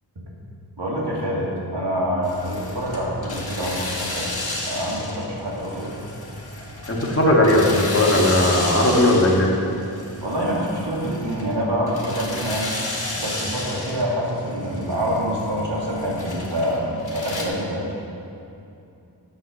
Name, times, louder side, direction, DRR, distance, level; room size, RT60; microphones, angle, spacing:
voice 1, 0.8-4.3 4.7-5.9 10.2-12.8 13.2-16.9 17.1-17.8, equal, 80° right, -4 dB, 2.4 m, -26 dB
sound 1, 2.2-17.5, left 2 dB, 60° left, 2.1 m, -33 dB
voice 2, 6.9-9.5, left 1 dB, 35° left, -2 dB, 1.8 m, -17 dB
9.2 x 8.1 x 6.6 m, 2.6 s
wide cardioid pair, 80°, 41 cm